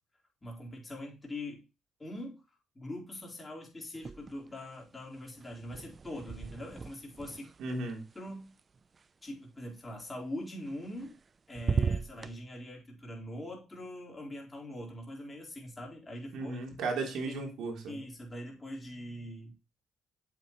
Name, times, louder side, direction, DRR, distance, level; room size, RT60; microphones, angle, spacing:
voice 1, 0.4-1.6 2.0-2.4 2.7-7.5 8.1-8.5 9.2-11.2 11.5-16.6 17.3-17.4 17.9-19.5, left 1 dB, 20° left, -1 dB, 4.1 m, -42 dB
sound 1, 3.9-4.7 4.9-9.0 10.7-11.3 11.5-12.3, right 5 dB, 35° right, 0.5 m, -37 dB
voice 2, 7.6-8.0 16.3-18.0, right 3 dB, 80° right, 1 dB, 3.4 m, -35 dB
8.4 x 7.6 x 3.1 m, 0.30 s
cardioid pair, 90°, 0 cm